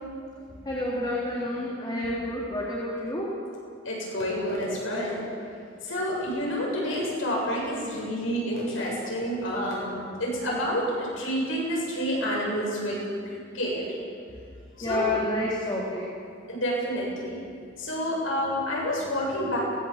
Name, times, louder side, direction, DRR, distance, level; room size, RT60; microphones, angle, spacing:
voice 1, 0.7-3.3 14.8-16.1, left 1 dB, 25° left, -5 dB, 3.6 m, -29 dB
voice 2, 3.8-5.2 5.8-9.9 10.2-13.0 13.3-14.0 14.8-15.1 16.5-17.4 17.8-19.6, equal, 80° left, -3 dB, 7.8 m, -29 dB
23.5 x 20.0 x 7.5 m, 2.4 s
head